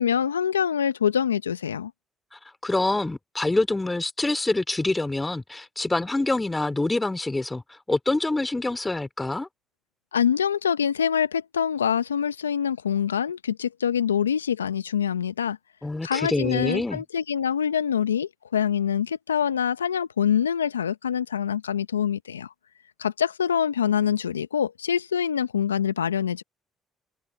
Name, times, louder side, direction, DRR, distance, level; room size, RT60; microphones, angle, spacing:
voice 1, 0.0-1.9 10.1-15.6 16.0-22.5 23.0-26.4, left 8 dB, 90° left, 0.7 m, -25 dB
voice 2, 2.3-7.6 7.9-9.5 15.8-17.0, left 2 dB, 15° left, 2.7 m, -26 dB
hypercardioid pair, 50°, 0 cm